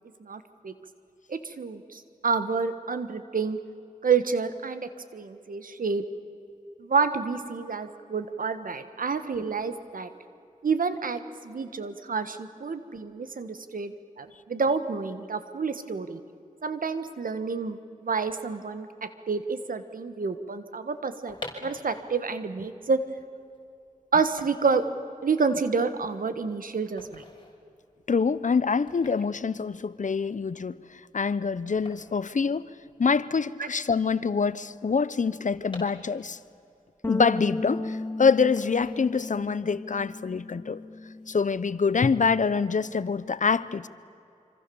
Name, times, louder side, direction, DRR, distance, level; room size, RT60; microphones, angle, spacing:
voice 1, 0.2-0.7 1.3-3.6 4.0-6.0 6.8-10.1 10.6-16.2 16.6-21.3 21.6-23.0 24.1-24.8 25.2-27.2 33.6-33.7, right 5 dB, 85° right, 10 dB, 1.5 m, -29 dB
sound 1, 21.0-33.2 33.4-33.5 33.7-36.6 37.0-38.0 38.6-39.6 39.9-40.2, left 2 dB, 35° left, 5.8 m, -48 dB
voice 2, 28.1-30.8 31.1-32.7 33.0-36.4 37.1-40.8 41.3-43.9, left 5 dB, 65° left, 17 dB, 0.8 m, -25 dB
sound 2, 37.0-41.6 41.9-43.3, left 2 dB, 20° left, 0.9 m, -36 dB
26.0 x 26.0 x 7.1 m, 2.6 s
cardioid pair, 45°, 14 cm